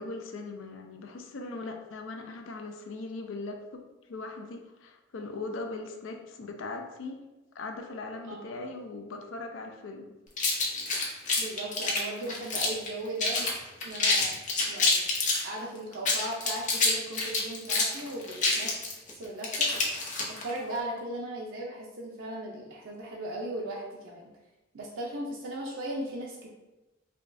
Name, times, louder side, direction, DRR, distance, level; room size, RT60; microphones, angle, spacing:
voice 1, 0.0-3.8 4.1-7.2 7.5-10.1, left 3 dB, 80° left, 4 dB, 0.5 m, -39 dB
voice 2, 8.2-8.6 11.4-13.5 13.8-14.4 14.7-15.0 15.4-18.8 19.2-19.7 20.3-24.3 24.7-26.5, right 1 dB, 80° right, -3 dB, 0.5 m, -37 dB
sound 1, 10.4-12.9 13.2-13.5 13.8-15.4 15.9-20.5, left 3 dB, 40° left, 0.7 m, -27 dB
5.0 x 2.3 x 2.5 m, 1.1 s
head